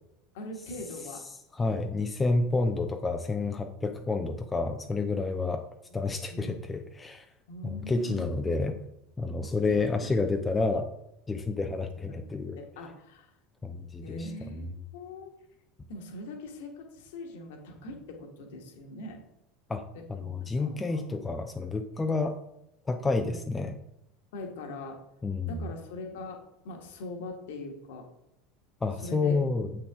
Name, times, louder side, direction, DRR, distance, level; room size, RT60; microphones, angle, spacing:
voice 1, 0.3-1.2 2.3-2.5 5.9-6.6 7.5-8.4 9.6-9.9 12.1-13.3 14.0-15.3 15.9-19.2 19.9-21.0 23.2-23.4 24.3-25.0 25.5-26.4 26.6-28.1 29.0-29.4, left 2 dB, 60° left, 3 dB, 1.4 m, -42 dB
voice 2, 1.6-5.6 5.9-7.2 7.6-8.7 9.2-10.9 11.3-12.6 13.6-14.6 19.7-19.8 20.1-22.4 22.9-23.8 25.2-25.7 28.8-29.7, left 3 dB, 15° left, 5 dB, 0.6 m, -29 dB
8.1 x 6.0 x 3.6 m, 0.85 s
figure-of-eight pair, 75°, 0 cm